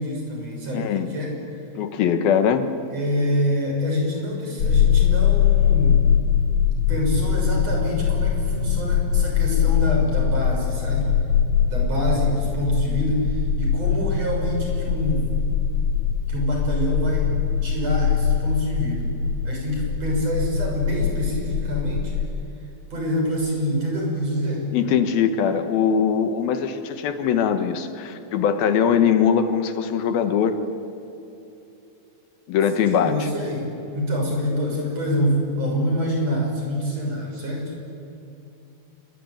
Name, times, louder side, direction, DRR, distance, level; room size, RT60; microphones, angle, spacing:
voice 1, 0.0-1.3 2.9-6.0 6.9-11.1 11.7-15.3 16.3-17.3 17.6-19.1 19.4-22.1 22.9-24.7 32.9-37.7, equal, 40° right, 0 dB, 7.2 m, -26 dB
voice 2, 0.7-1.1 1.8-2.7 24.7-30.6 32.5-33.3, left 7 dB, 75° left, 9 dB, 3.0 m, -21 dB
sound 1, 4.6-22.3, left 8 dB, 60° left, 2.7 m, -22 dB
27.5 x 23.0 x 9.1 m, 2.8 s
omnidirectional pair, 4.4 m